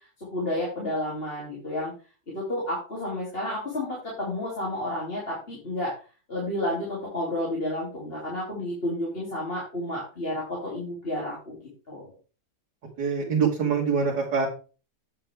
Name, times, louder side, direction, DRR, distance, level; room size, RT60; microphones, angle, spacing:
voice 1, 0.2-1.9 2.3-5.9 6.3-11.6 11.9-12.1, left 1 dB, 35° left, -5 dB, 3.0 m, -31 dB
voice 2, 13.0-14.5, right 6 dB, 70° right, -3 dB, 2.4 m, -24 dB
9.0 x 7.5 x 3.4 m, 0.35 s
omnidirectional pair, 1.9 m